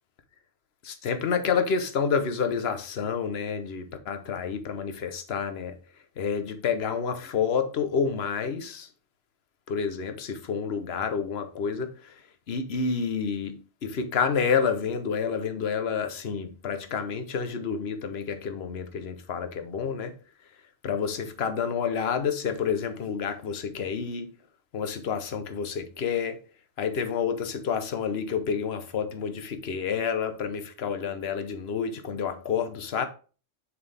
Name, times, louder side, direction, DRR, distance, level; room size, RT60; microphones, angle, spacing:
voice 1, 0.8-5.8 6.2-8.9 9.7-12.1 12.5-20.1 20.8-24.3 24.7-26.4 26.8-33.1, left 6 dB, 60° left, 1.2 m, -29 dB
7.1 x 6.6 x 3.4 m
omnidirectional pair, 1.2 m